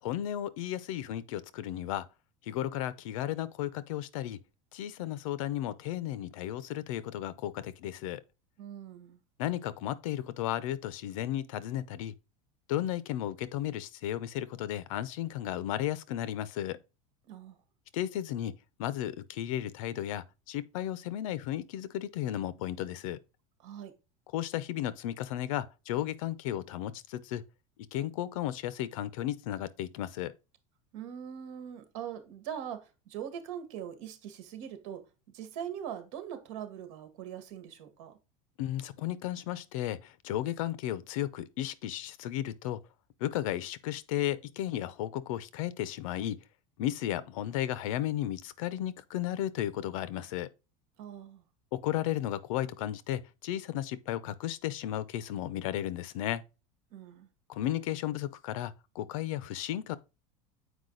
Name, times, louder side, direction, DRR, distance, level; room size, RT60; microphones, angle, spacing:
voice 1, 0.0-2.1 2.5-4.4 4.7-8.2 9.4-12.1 12.7-16.8 17.9-18.5 18.8-23.2 24.3-27.4 27.9-30.3 38.6-42.8 43.2-46.4 46.8-50.5 51.7-56.4 57.5-60.0, left 12 dB, 75° left, 0.8 m, -34 dB
voice 2, 8.6-9.2 17.3-17.6 23.6-23.9 30.9-35.0 35.3-38.2 51.0-51.4 56.9-57.3, right 9 dB, 65° right, 1.8 m, -42 dB
8.1 x 4.9 x 3.9 m
supercardioid pair, 170°, 17 cm